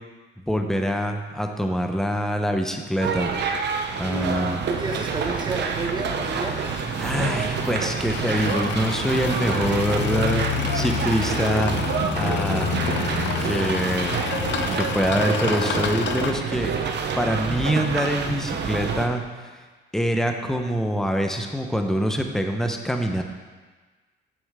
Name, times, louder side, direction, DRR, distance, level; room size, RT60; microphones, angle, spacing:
voice 1, 0.4-3.3 4.0-4.6 7.0-10.4 10.7-11.7 12.2-12.7 13.4-14.1 14.7-16.7 17.2-19.6 19.9-23.2, equal, ahead, 4 dB, 0.9 m, -25 dB
sound 1, 3.0-19.1, right 6 dB, 60° right, 0.8 m, -27 dB
voice 2, 4.7-6.6, right 2 dB, 20° right, 0 dB, 1.6 m, -30 dB
sound 2, 5.7-16.3, left 7 dB, 65° left, 0.7 m, -29 dB
9.1 x 7.1 x 3.6 m, 1.4 s
cardioid pair, 90°, 20 cm